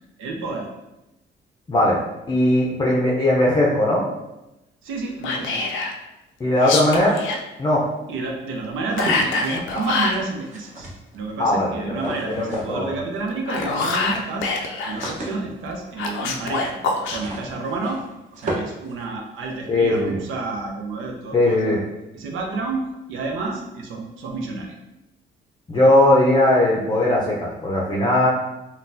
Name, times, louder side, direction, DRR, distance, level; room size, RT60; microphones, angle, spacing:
voice 1, 0.2-0.7 4.8-5.7 8.1-10.9 11.1-14.5 14.8-16.8 17.1-18.0 18.3-21.8 22.1-24.7, right 3 dB, 85° right, 2 dB, 0.6 m, -30 dB
voice 2, 1.7-2.0 2.3-4.0 6.4-7.2 7.6-7.8 11.4-12.0 12.4-12.9 19.7-20.2 21.3-21.8 25.7-28.3, left 1 dB, 20° left, -4 dB, 0.5 m, -18 dB
Whispering, 5.2-6.0 6.6-7.4 9.0-10.2 13.3-15.1 16.0-17.2, left 3 dB, 80° left, 0.4 m, -25 dB
sound 1, 8.8-11.3 11.9-12.9 13.1-13.2 13.5-19.7, right 1 dB, 40° right, 0.9 m, -36 dB
3.8 x 2.2 x 2.6 m, 0.96 s
cardioid pair, 90°, 20 cm